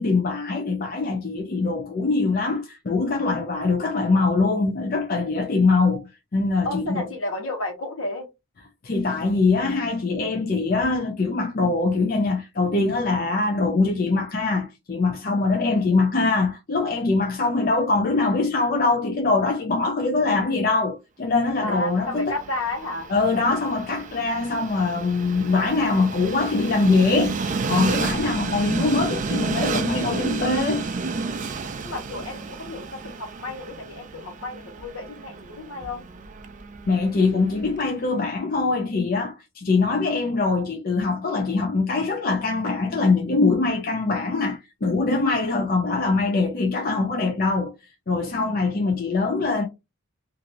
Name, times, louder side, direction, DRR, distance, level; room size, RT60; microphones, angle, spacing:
voice 1, 0.0-7.0 8.8-22.4 23.1-30.8 36.9-47.7 48.1-49.7, left 3 dB, 45° left, 0.5 m, -23 dB
voice 2, 6.6-8.3 21.6-23.1 31.8-36.0, left 2 dB, 70° left, 1.2 m, -32 dB
Train, 21.9-38.0, right 4 dB, 35° right, 0.4 m, -31 dB
3.0 x 2.6 x 2.6 m
head